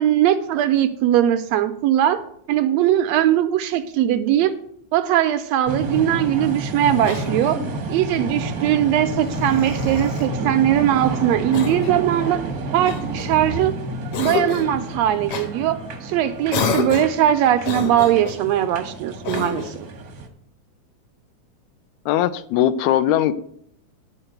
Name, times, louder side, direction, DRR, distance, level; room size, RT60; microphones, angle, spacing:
voice 1, 0.0-2.2 2.5-4.5 4.9-7.6 7.9-12.4 12.7-13.7 14.2-19.9, right 11 dB, 80° right, 9 dB, 1.6 m, -20 dB
sound 1, 5.7-20.3, right 2 dB, 55° right, 1.0 m, -30 dB
Cough, 7.0-7.8 9.2-10.3 11.5-12.1 12.9-13.7 14.1-14.8 15.3-15.5 16.5-17.2 17.6-18.4 19.2-19.8, left 5 dB, 60° left, 1.9 m, -28 dB
voice 2, 22.1-23.3, left 11 dB, 80° left, 13 dB, 1.9 m, -19 dB
11.0 x 4.5 x 7.8 m, 0.68 s
omnidirectional pair, 3.3 m